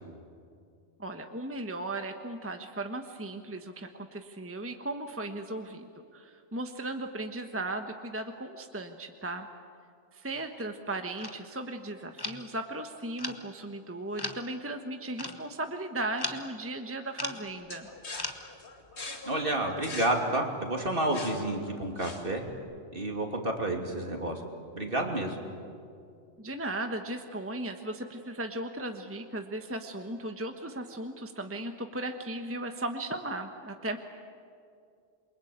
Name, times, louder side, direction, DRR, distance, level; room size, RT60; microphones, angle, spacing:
voice 1, 1.0-9.5 10.1-17.9 26.4-34.0, right 2 dB, 10° right, 5 dB, 1.2 m, -36 dB
sound 1, 10.3-10.5 11.2-11.4 12.2-12.5 13.2-13.5 14.2-14.4 15.2-15.4 16.2-16.6 17.2-17.5 18.2-18.3, left 2 dB, 20° left, 1.4 m, -37 dB
sound 2, 17.7-22.5, left 3 dB, 65° left, 2.6 m, -43 dB
voice 2, 19.2-22.4 22.9-24.4 24.7-25.4, right 1 dB, 50° right, 2 dB, 3.2 m, -30 dB
28.0 x 23.5 x 8.8 m, 2.4 s
omnidirectional pair, 1.2 m